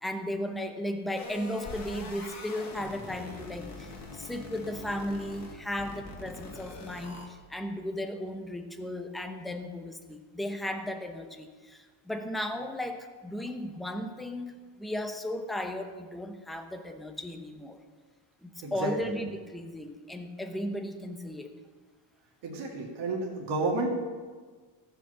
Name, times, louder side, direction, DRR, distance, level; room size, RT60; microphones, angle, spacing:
voice 1, 0.0-17.8 18.4-21.5, left 1 dB, ahead, 5 dB, 0.7 m, -35 dB
sound 1, 1.2-7.3, left 3 dB, 35° left, 2.0 m, -43 dB
voice 2, 22.4-23.9, right 3 dB, 55° right, -1 dB, 2.3 m, -31 dB
15.0 x 6.0 x 7.3 m, 1.4 s
cardioid pair, 155°, 48 cm